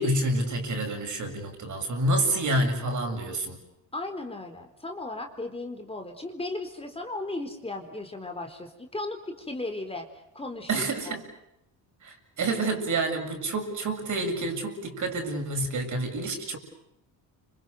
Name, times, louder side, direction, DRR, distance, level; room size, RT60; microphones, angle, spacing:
voice 1, 0.0-3.6 10.7-11.3 12.0-16.6, right 2 dB, 50° right, 4 dB, 7.2 m, -28 dB
voice 2, 3.9-10.1 10.3-10.8 11.1-11.2, left 2 dB, 15° left, 4 dB, 4.1 m, -36 dB
30.0 x 26.5 x 6.6 m, 0.81 s
cardioid pair, 95°, 38 cm